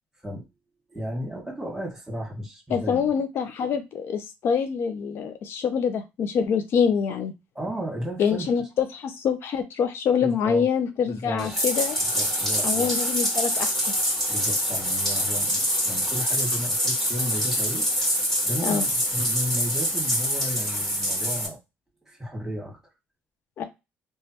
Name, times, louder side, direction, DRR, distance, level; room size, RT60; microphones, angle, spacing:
voice 1, 0.9-3.1 7.5-8.5 10.2-10.6 11.1-11.5 12.1-12.9 14.3-17.9 18.4-21.6 22.0-22.8, equal, 5° right, 0 dB, 1.5 m, -33 dB
voice 2, 2.7-7.3 8.2-12.0 12.6-13.9 18.6-18.9 23.6-23.7, left 7 dB, 65° left, 8 dB, 0.4 m, -25 dB
Bathtub (filling or washing), 11.4-21.5, equal, 10° left, 1.3 m, -25 dB
3.1 x 2.2 x 2.8 m, 0.24 s
cardioid pair, 100°, 4 cm